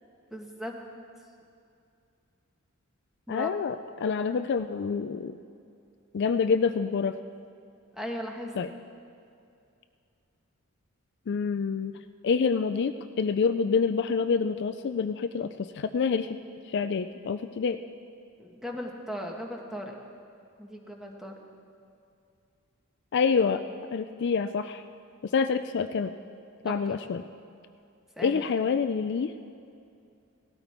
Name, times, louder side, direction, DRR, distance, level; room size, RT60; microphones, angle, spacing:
voice 1, 0.3-0.7 3.3-3.5 8.0-8.5 18.4-19.9 20.6-21.3 26.6-26.9 28.2-28.7, equal, ahead, 1 dB, 1.4 m, -37 dB
voice 2, 3.3-5.3 6.1-7.1 8.6-8.7 11.3-11.9 12.2-16.3 16.7-17.8 23.1-23.6 23.9-24.8 25.3-26.1 26.6-27.2 28.2-29.6, left 5 dB, 55° left, 10 dB, 0.4 m, -27 dB
17.5 x 13.0 x 4.4 m, 2.5 s
head